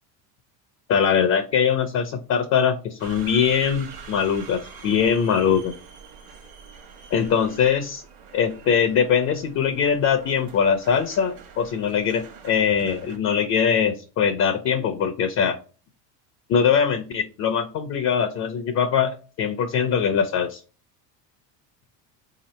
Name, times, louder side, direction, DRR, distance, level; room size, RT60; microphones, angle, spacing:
voice 1, 0.9-5.7 7.1-8.0 8.3-15.6 16.5-20.6, left 7 dB, 35° left, 7 dB, 0.5 m, -22 dB
sound 1, 3.0-13.2, right 6 dB, 50° right, 1.1 m, -44 dB
3.8 x 2.8 x 3.1 m, 0.36 s
supercardioid pair, 120°, 47 cm